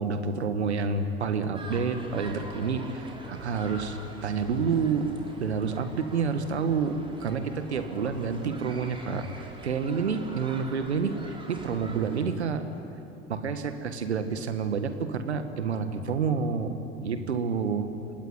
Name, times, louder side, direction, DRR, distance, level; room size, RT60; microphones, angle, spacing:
voice 1, 0.0-12.6 13.3-17.9, right 5 dB, 75° right, 9 dB, 1.7 m, -29 dB
sound 1, 1.5-12.2, right 1 dB, 15° right, 4.7 m, -44 dB
26.0 x 19.0 x 9.8 m, 3.0 s
figure-of-eight pair, 65°, 33 cm